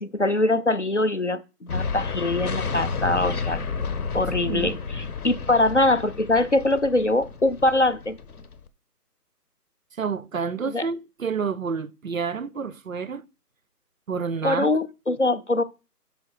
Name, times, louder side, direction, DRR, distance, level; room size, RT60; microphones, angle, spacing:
voice 1, 0.0-3.6 4.1-8.2 10.7-10.9 14.4-15.6, left 2 dB, 50° left, 0.4 m, -23 dB
sound 1, 1.7-8.7, left 5 dB, 65° left, 0.9 m, -31 dB
voice 2, 4.4-4.8 10.0-13.2 14.1-14.8, right 5 dB, 60° right, 0.5 m, -29 dB
5.7 x 5.3 x 4.7 m
hypercardioid pair, 175°, 48 cm